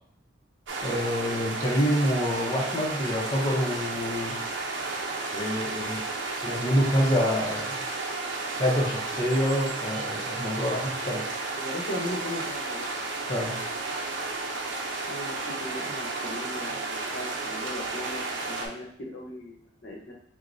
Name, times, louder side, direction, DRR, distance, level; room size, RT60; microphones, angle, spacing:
sound 1, 0.7-18.7, right 3 dB, 75° right, 0.6 m, -33 dB
voice 1, 0.8-4.4 5.3-6.0 6.4-7.8 8.6-11.2 13.3-13.6, equal, 20° left, -4 dB, 0.7 m, -27 dB
voice 2, 11.5-12.9 15.0-20.1, left 1 dB, 65° left, -1 dB, 0.8 m, -38 dB
6.2 x 2.2 x 2.6 m, 0.63 s
head